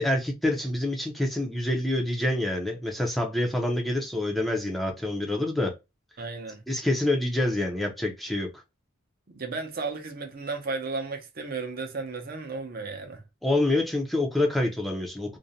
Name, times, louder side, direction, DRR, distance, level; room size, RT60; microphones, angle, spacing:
voice 1, 0.0-5.7 6.7-8.5 13.4-15.4, left 1 dB, ahead, 0.4 m, -26 dB
voice 2, 6.2-6.6 9.3-13.2, right 3 dB, 45° right, 0.6 m, -34 dB
2.5 x 2.1 x 2.7 m
head